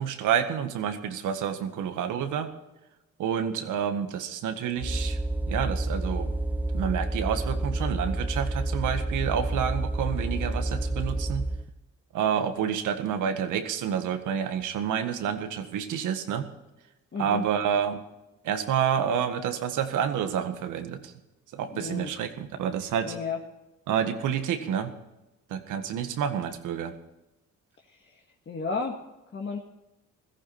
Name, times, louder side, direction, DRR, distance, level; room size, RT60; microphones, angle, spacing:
voice 1, 0.0-2.5 3.2-5.2 5.5-6.3 6.7-11.5 12.1-16.5 17.2-18.0 18.4-21.1 21.5-23.2 23.9-24.9 25.5-27.0, right 8 dB, 85° right, 8 dB, 1.8 m, -29 dB
sound 1, 4.8-11.7, right 1 dB, 5° right, 0.5 m, -29 dB
voice 2, 17.1-17.4 21.7-22.1 23.0-23.4 28.1-28.2 28.5-29.0 29.3-29.6, left 4 dB, 40° left, 0 dB, 1.8 m, -32 dB
16.5 x 14.5 x 4.4 m, 0.97 s
cardioid pair, 90°, 30 cm